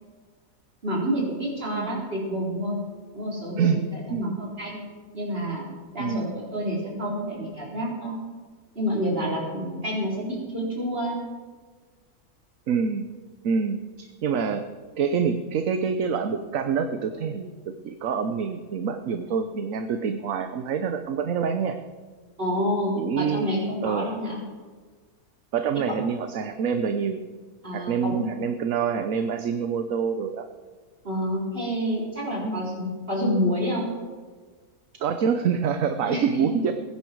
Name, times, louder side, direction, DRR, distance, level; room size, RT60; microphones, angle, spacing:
voice 1, 0.8-2.8 3.1-4.8 5.1-5.6 5.9-8.2 8.7-11.1 22.4-24.4 27.6-28.4 31.0-33.9 36.1-36.4, equal, 35° right, -4 dB, 4.4 m, -28 dB
voice 2, 1.7-2.0 3.6-3.8 4.1-4.4 6.0-6.3 12.7-13.1 13.4-14.6 15.0-21.8 23.0-23.5 23.8-24.1 25.5-27.2 27.7-30.4 32.4-32.6 35.0-36.7, right 6 dB, 65° right, 7 dB, 1.1 m, -26 dB
20.0 x 10.5 x 4.6 m, 1.4 s
omnidirectional pair, 1.6 m